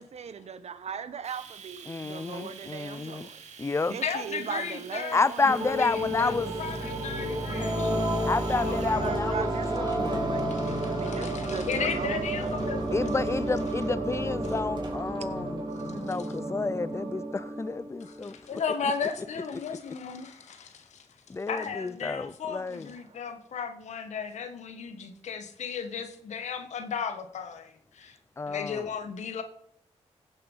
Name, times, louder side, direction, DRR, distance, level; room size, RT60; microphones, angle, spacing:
voice 1, 0.0-3.4 3.9-5.4 9.0-12.7, right 7 dB, 70° right, 1.2 m, -38 dB
Domestic sounds home sounds, 1.2-9.0, right 7 dB, 90° right, 1.9 m, -47 dB
voice 2, 1.9-3.3 3.6-3.9 5.1-6.5 8.3-10.3 12.9-18.9 21.3-22.9 28.4-28.9, left 3 dB, 25° left, 0.5 m, -30 dB
voice 3, 4.0-5.2 5.8-8.1 8.6-9.2 10.5-13.3 15.7-16.3 18.0-21.1 21.5-28.2 28.5-29.4, left 6 dB, 85° left, 1.6 m, -35 dB
sound 1, 5.4-18.3, right 1 dB, 40° right, 3.5 m, -31 dB
15.5 x 6.7 x 5.6 m
cardioid pair, 75°, 12 cm